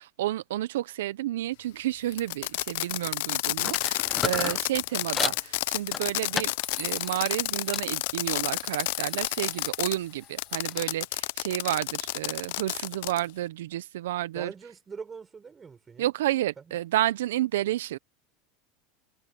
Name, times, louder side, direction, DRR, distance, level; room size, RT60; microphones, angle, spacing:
voice 1, 0.0-6.5 6.8-14.5 16.0-18.0, right 14 dB, 80° right, 0.7 m, -30 dB
Fireworks, 2.1-10.0 10.4-13.3, left 20 dB, 70° left, 0.7 m, -30 dB
sound 1, 3.6-5.4 5.9-7.9 8.2-10.9, left 5 dB, 25° left, 1.2 m, -36 dB
voice 2, 14.3-16.1 16.7-16.8, right 5 dB, 25° right, 6.7 m, -42 dB
hypercardioid pair, 90°, 0 cm